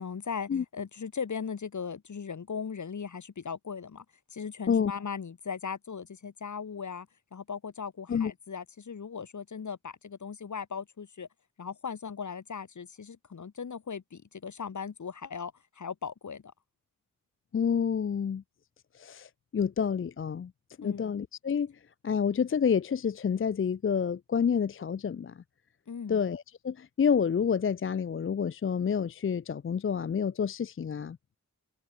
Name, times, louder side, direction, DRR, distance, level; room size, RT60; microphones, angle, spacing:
voice 1, 0.0-4.0 4.3-7.1 7.3-11.3 11.6-16.5 20.8-21.2 25.9-26.2, left 6 dB, 55° left, 1.1 m, -38 dB
voice 2, 17.5-18.4 18.9-20.5 20.8-21.7 22.0-25.4 26.1-31.2, left 7 dB, 40° left, 0.5 m, -28 dB
cardioid pair, 45°, 35 cm